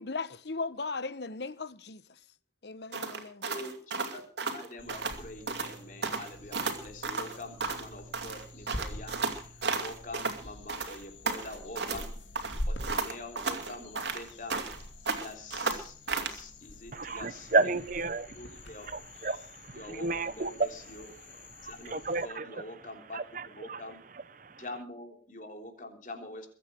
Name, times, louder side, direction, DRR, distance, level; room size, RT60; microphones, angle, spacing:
voice 1, 0.0-2.2 2.6-3.5, left 3 dB, 60° left, 1.0 m, -37 dB
sound 1, 2.9-5.2 5.5-5.7 6.0-7.9 8.1-10.4 10.7-12.1 12.4-14.8 15.1-16.4, right 4 dB, 65° right, 2.6 m, -33 dB
voice 2, 3.5-12.2 12.7-14.6 15.1-17.8 18.3-18.9 19.7-21.1 21.6-24.1 24.6-26.5, left 2 dB, 45° left, 3.5 m, -45 dB
sound 2, 4.8-22.3, left 1 dB, 85° left, 2.5 m, -45 dB
voice 3, 16.9-18.5 18.9-20.7 21.0-22.5 23.1-23.8 24.4-24.6, right 3 dB, 45° right, 0.8 m, -32 dB
22.0 x 8.9 x 6.2 m
head